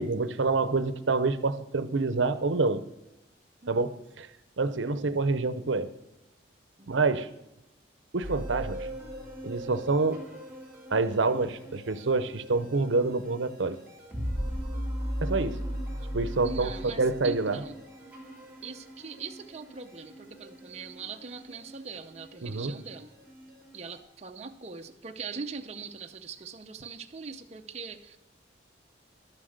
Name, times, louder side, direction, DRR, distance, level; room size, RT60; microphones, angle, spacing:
voice 1, 0.0-2.8 3.7-4.3 4.6-5.9 6.9-7.3 8.1-8.9 9.4-10.2 10.9-13.8 15.2-15.6 16.1-16.7 17.0-17.6 22.4-22.7, right 3 dB, 75° right, 13 dB, 0.7 m, -27 dB
sound 1, 8.2-24.0, equal, 10° right, 3.2 m, -39 dB
voice 2, 16.4-17.7 18.6-23.1 23.7-28.2, right 5 dB, 35° right, 4 dB, 0.6 m, -41 dB
11.5 x 7.6 x 6.5 m, 0.94 s
head